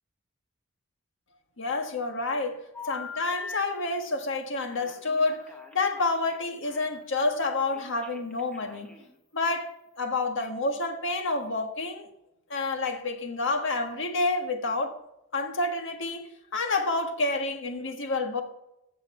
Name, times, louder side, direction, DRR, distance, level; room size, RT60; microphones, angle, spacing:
voice 1, 1.6-2.6 2.9-9.0 9.3-12.1 12.5-14.9 15.3-16.3 16.5-18.4, left 3 dB, 65° left, 1.6 m, -29 dB
Telephone, 2.7-3.6 4.7-6.9 7.7-9.2, left 3 dB, 5° left, 1.3 m, -42 dB
15.0 x 6.6 x 4.4 m
head